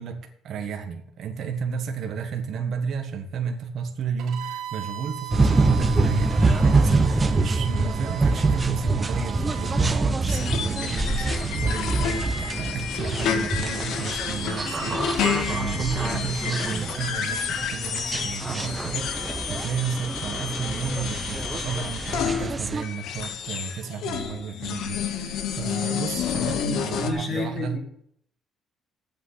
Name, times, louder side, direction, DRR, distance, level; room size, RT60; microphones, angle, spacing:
voice 1, 0.0-27.8, right 6 dB, 60° right, 4 dB, 1.5 m, -32 dB
Bowed string instrument, 4.2-9.9, right 12 dB, 75° right, 2.4 m, -39 dB
sound 1, 5.3-22.8, right 3 dB, 20° right, 1.0 m, -25 dB
sound 2, 10.3-27.1, left 7 dB, 70° left, 1.3 m, -30 dB
voice 2, 26.5-27.8, left 2 dB, 45° left, 2 dB, 2.8 m, -30 dB
9.0 x 7.9 x 8.5 m, 0.69 s
cardioid pair, 115°, 0 cm